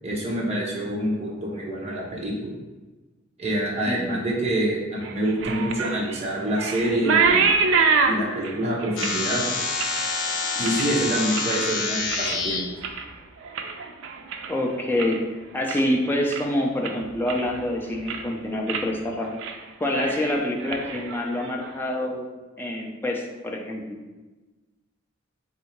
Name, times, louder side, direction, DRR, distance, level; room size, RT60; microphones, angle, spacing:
voice 1, 0.0-2.5 3.4-7.5 8.0-9.4 10.6-12.6, right 1 dB, 30° right, -3 dB, 0.9 m, -26 dB
voice 2, 3.9-4.3 14.5-15.2 15.5-19.3 19.8-22.3 22.6-24.0, left 1 dB, 10° left, 0 dB, 0.4 m, -26 dB
sound 1, 5.0-11.7 12.0-12.5 12.8-15.2 15.5-16.0 16.3-16.4 16.8-17.6 17.9-18.3 18.7-18.9 19.2-19.6 19.8-21.7, right 5 dB, 65° right, 0.4 m, -26 dB
sound 2, 9.0-12.6, left 3 dB, 60° left, 0.6 m, -27 dB
3.7 x 2.7 x 4.4 m, 1.2 s
head